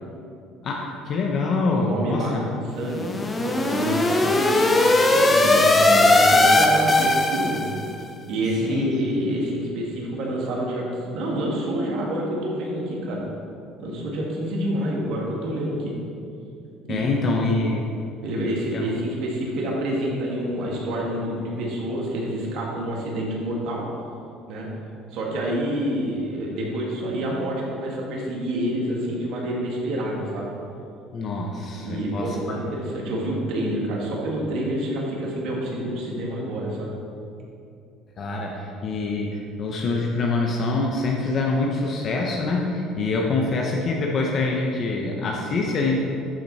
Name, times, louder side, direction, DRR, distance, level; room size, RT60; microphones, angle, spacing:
voice 1, 0.6-2.5 8.6-9.2 16.9-17.9 18.4-18.8 31.1-32.6 38.2-46.0, left 3 dB, 45° left, 0 dB, 0.9 m, -25 dB
voice 2, 1.7-3.1 3.4-7.7 8.3-10.9 11.1-13.2 13.8-16.0 16.8-17.4 18.2-23.9 24.5-24.7 25.1-30.5 31.8-36.9, right 1 dB, 65° right, -3 dB, 2.0 m, -28 dB
sound 1, 2.9-7.9, left 2 dB, 20° left, 0.8 m, -19 dB
11.0 x 4.4 x 4.1 m, 2.5 s
supercardioid pair, 95°, 0 cm